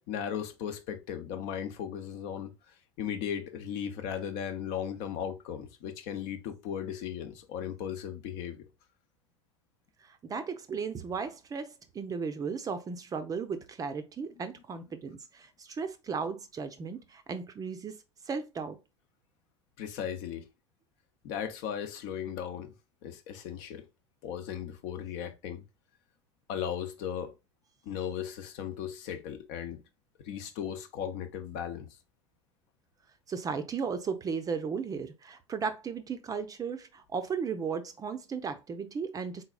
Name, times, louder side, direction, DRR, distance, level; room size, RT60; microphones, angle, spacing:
voice 1, 0.1-2.5 3.0-8.6 19.8-20.4 21.2-22.7 23.0-23.9 24.2-25.6 26.5-27.3 27.8-29.8 30.2-32.0, left 9 dB, 50° left, 0.8 m, -36 dB
voice 2, 10.1-17.9 18.3-18.8 33.3-39.4, right 5 dB, 25° right, 0.6 m, -35 dB
4.0 x 3.9 x 2.3 m
figure-of-eight pair, 75°, 16 cm